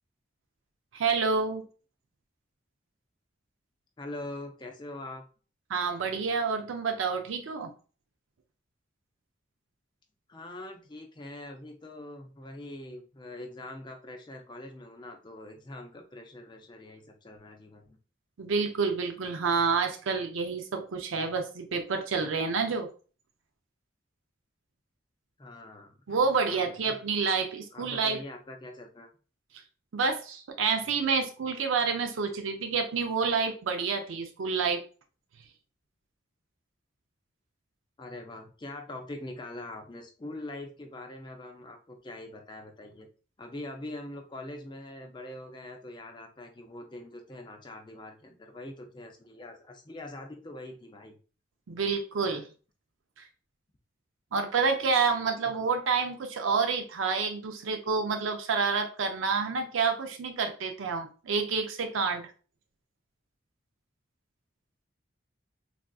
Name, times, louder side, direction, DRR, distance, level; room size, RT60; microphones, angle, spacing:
voice 1, 0.9-1.6 5.7-7.7 18.4-22.9 26.1-28.2 29.9-34.8 51.7-52.5 54.3-62.2, right 5 dB, 85° right, 5 dB, 0.5 m, -28 dB
voice 2, 4.0-5.3 10.3-18.0 25.4-25.9 26.3-27.0 27.7-29.1 38.0-43.1 43.4-51.2, left 1 dB, 25° left, 4 dB, 0.4 m, -43 dB
3.5 x 2.5 x 2.3 m, 0.37 s
head